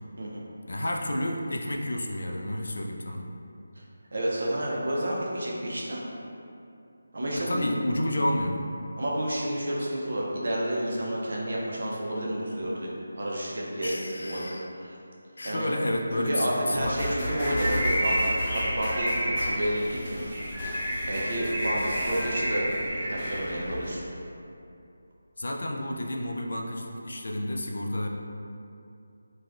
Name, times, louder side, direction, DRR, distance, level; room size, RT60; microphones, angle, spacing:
voice 1, 0.7-3.3 7.4-8.6 13.8-14.7 15.4-17.0 25.4-28.1, left 1 dB, 75° left, 1 dB, 0.3 m, -30 dB
voice 2, 4.1-6.0 7.1-7.7 9.0-12.9 13.1-13.9 14.2-15.0 15.4-15.7 16.2-22.7 23.0-24.0, right 1 dB, 60° right, -4 dB, 0.6 m, -30 dB
sound 1, 16.8-23.9, equal, 25° left, 0.7 m, -34 dB
Bird, 17.3-23.6, right 1 dB, 30° right, 1.0 m, -31 dB
3.3 x 2.2 x 2.4 m, 2.6 s
figure-of-eight pair, 170°, 0 cm